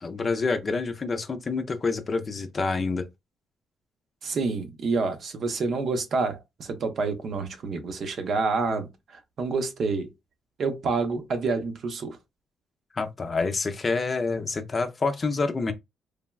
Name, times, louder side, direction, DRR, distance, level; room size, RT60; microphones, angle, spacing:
voice 1, 0.0-3.1 12.9-15.7, left 4 dB, 35° left, 0.4 m, -27 dB
voice 2, 4.2-10.1 10.6-12.2, right 4 dB, 60° right, 0.7 m, -28 dB
3.3 x 2.1 x 2.3 m
cardioid pair, 90°, 0 cm